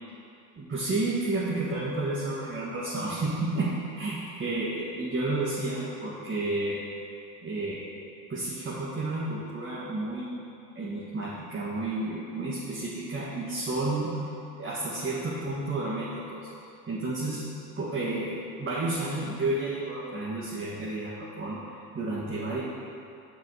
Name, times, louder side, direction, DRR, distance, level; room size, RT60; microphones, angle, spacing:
voice 1, 0.6-6.8 7.4-7.8 8.3-10.4 10.7-14.2 14.6-16.5 16.9-17.5 17.8-22.6, right 2 dB, 25° right, -8 dB, 1.8 m, -31 dB
6.7 x 4.9 x 6.5 m, 2.6 s
hypercardioid pair, 60°, 48 cm